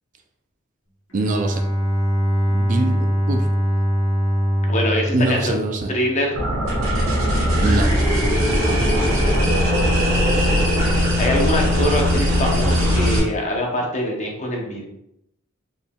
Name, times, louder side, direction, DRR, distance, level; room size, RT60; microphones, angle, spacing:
Bowed string instrument, 1.1-6.4, equal, 75° left, 1.0 m, -22 dB
voice 1, 1.1-1.6 2.5-3.5 5.1-5.9 7.6-7.9, right 2 dB, 40° right, 4 dB, 0.3 m, -23 dB
voice 2, 4.7-5.6 5.9-6.4 8.5-10.5 10.9-14.8, left 1 dB, 35° left, 0 dB, 0.7 m, -25 dB
sound 1, 6.3-13.2, equal, 80° right, 1.2 m, -19 dB
4.1 x 3.5 x 2.3 m, 0.83 s
head